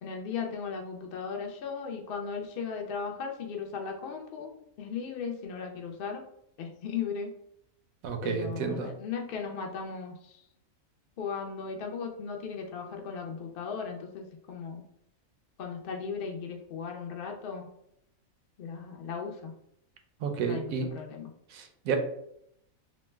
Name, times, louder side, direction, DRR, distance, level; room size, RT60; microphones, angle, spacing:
voice 1, 0.0-4.5 4.8-6.2 6.6-7.3 8.2-10.1 11.2-14.8 15.6-17.7 18.6-19.5 20.5-21.3, left 6 dB, 60° left, 2 dB, 0.6 m, -37 dB
voice 2, 8.0-8.9 20.2-20.9 21.5-22.0, right 6 dB, 80° right, 6 dB, 1.0 m, -31 dB
2.9 x 2.1 x 3.3 m, 0.74 s
omnidirectional pair, 1.5 m